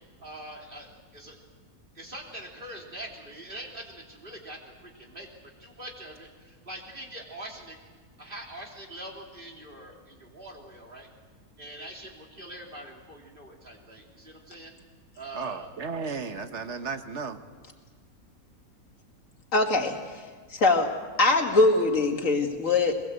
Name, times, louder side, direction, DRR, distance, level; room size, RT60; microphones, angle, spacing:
voice 1, 0.2-1.4 1.9-5.3 5.6-7.8 8.2-11.1 11.6-14.7 15.2-15.7, right 1 dB, 35° right, 0 dB, 3.5 m, -43 dB
voice 2, 15.3-17.4, right 5 dB, 55° right, 8 dB, 1.3 m, -34 dB
voice 3, 19.5-20.0 20.5-23.0, left 3 dB, 60° left, 3 dB, 2.6 m, -22 dB
23.0 x 21.5 x 8.0 m, 1.5 s
omnidirectional pair, 1.6 m